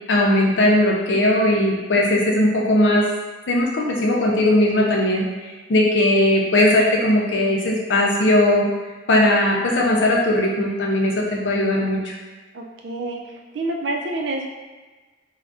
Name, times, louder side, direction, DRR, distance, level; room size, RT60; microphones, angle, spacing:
voice 1, 0.1-3.1 3.5-8.7 9.1-12.1, left 1 dB, 75° left, -2 dB, 0.6 m, -18 dB
voice 2, 12.5-13.2 13.5-14.5, right 2 dB, 70° right, 1 dB, 0.4 m, -27 dB
2.5 x 2.1 x 3.5 m, 1.3 s
head